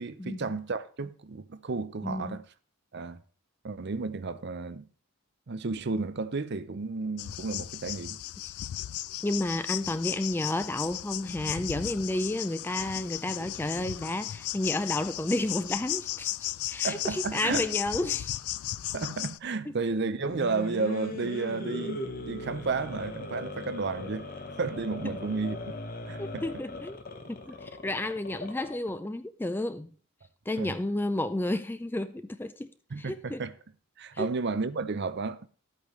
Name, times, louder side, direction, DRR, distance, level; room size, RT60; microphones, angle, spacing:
voice 1, 0.0-2.4 2.9-3.2 3.6-4.8 5.5-8.2 16.8-17.7 18.9-24.3 24.6-25.7 26.1-26.4 30.6-30.7 32.9-33.5 34.0-35.5, right 4 dB, 50° right, 0.6 m, -32 dB
voice 2, 2.0-2.4 8.4-8.5 9.2-16.3 16.7-18.4 26.2-27.0 27.3-29.9 30.5-32.7 33.0-33.4 34.1-34.3, left 1 dB, 10° left, 0.3 m, -31 dB
sound 1, 7.2-19.4, left 14 dB, 90° left, 0.4 m, -35 dB
sound 2, 20.1-28.9, left 2 dB, 40° left, 1.0 m, -39 dB
11.5 x 8.4 x 3.1 m
head